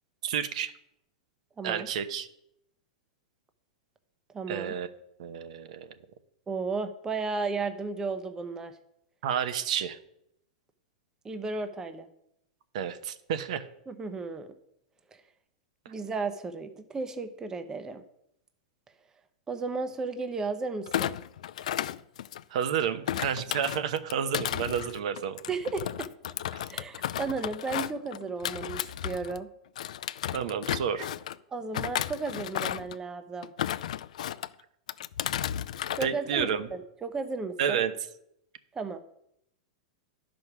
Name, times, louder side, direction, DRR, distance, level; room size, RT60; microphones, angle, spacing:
voice 1, 0.2-0.7 1.6-2.3 4.5-4.9 5.2-5.9 9.2-10.0 12.7-13.7 22.5-25.4 26.5-26.6 30.3-31.1 36.0-36.7 37.6-37.9, right 8 dB, 70° right, 10 dB, 1.0 m, -30 dB
voice 2, 1.6-1.9 4.3-4.7 6.5-8.7 11.2-12.1 13.9-14.5 15.1-15.2 15.9-18.0 19.5-21.2 25.5-26.1 26.7-29.5 31.5-33.5 35.9-37.8 38.7-39.0, right 4 dB, 15° right, 9 dB, 0.8 m, -34 dB
Thump thud, 20.9-22.6 23.1-29.4 29.7-31.4 31.7-33.0 33.4-34.5 34.9-36.1 36.4-36.7, left 11 dB, 80° left, 0.4 m, -33 dB
11.0 x 5.1 x 6.0 m, 0.77 s
hypercardioid pair, 130°, 4 cm